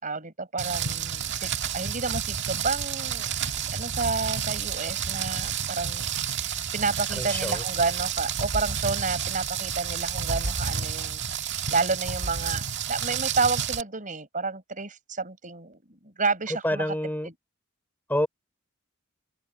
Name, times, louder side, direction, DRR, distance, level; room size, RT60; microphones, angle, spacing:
voice 1, 0.0-3.3 3.7-6.1 6.4-11.2 11.7-16.8 17.2-17.3, right 4 dB, 40° right, 5.4 m, -30 dB
Rain, 0.6-13.8, right 7 dB, 60° right, 2.0 m, -30 dB
voice 2, 7.1-7.6 16.5-17.3 18.1-18.3, left 1 dB, 10° left, 5.6 m, -28 dB
open air
head